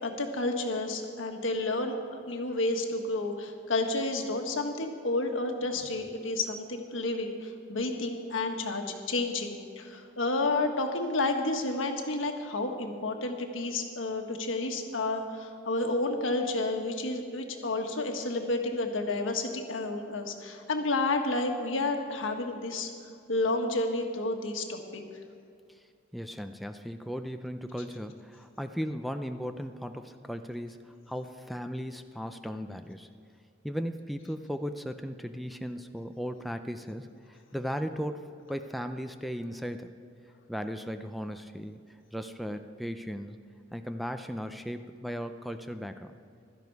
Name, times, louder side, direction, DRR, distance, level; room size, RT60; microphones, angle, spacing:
voice 1, 0.0-22.9 23.3-25.0, left 2 dB, 90° left, 4 dB, 1.5 m, -31 dB
voice 2, 26.1-33.1 33.6-39.9 40.5-41.9 42.1-43.4 43.7-46.1, equal, ahead, 7 dB, 0.4 m, -37 dB
16.0 x 12.5 x 4.7 m, 2.3 s
head